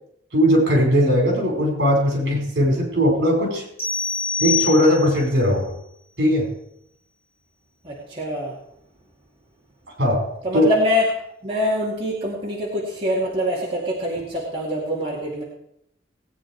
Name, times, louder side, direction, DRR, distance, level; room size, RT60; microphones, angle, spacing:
voice 1, 0.3-3.6 4.4-5.7 6.2-6.5 10.0-10.2 10.5-10.7, equal, 60° right, 0 dB, 5.2 m, -19 dB
sound 1, 3.8-5.3, left 5 dB, 10° left, 3.7 m, -25 dB
voice 2, 7.8-8.5 10.4-11.1 11.4-15.4, left 1 dB, 25° right, -6 dB, 2.5 m, -24 dB
18.5 x 9.2 x 4.7 m, 0.75 s
head